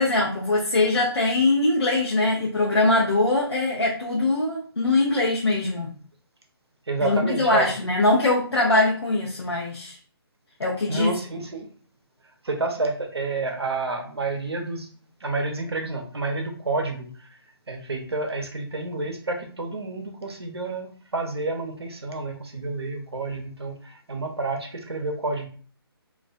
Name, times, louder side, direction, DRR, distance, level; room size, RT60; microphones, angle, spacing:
voice 1, 0.0-5.9 7.0-10.0 10.6-11.1, left 2 dB, 85° left, -3 dB, 0.6 m, -22 dB
voice 2, 6.9-7.7 10.9-11.7 12.4-14.9 15.2-17.3 17.7-25.5, right 3 dB, 80° right, 4 dB, 0.7 m, -29 dB
2.3 x 2.2 x 2.4 m, 0.43 s
figure-of-eight pair, 145°, 13 cm